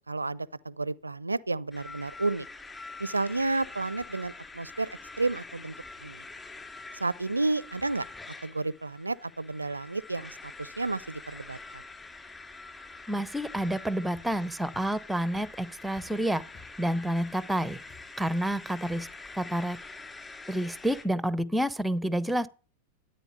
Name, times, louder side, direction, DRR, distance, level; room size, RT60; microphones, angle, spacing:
voice 1, 0.0-2.5 3.0-4.9 5.2-5.7 6.0-6.2 6.9-8.1 8.4-11.8, right 3 dB, 80° right, 0.6 m, -31 dB
sound 1, 1.7-21.0, left 3 dB, 15° left, 3.2 m, -46 dB
voice 2, 13.1-16.4 16.8-17.8 18.2-19.1 19.4-19.8 20.5-22.5, right 1 dB, 5° right, 1.0 m, -29 dB
sound 2, 13.4-20.0, left 4 dB, 30° left, 3.0 m, -57 dB
13.5 x 9.3 x 8.2 m
figure-of-eight pair, 90°, 0 cm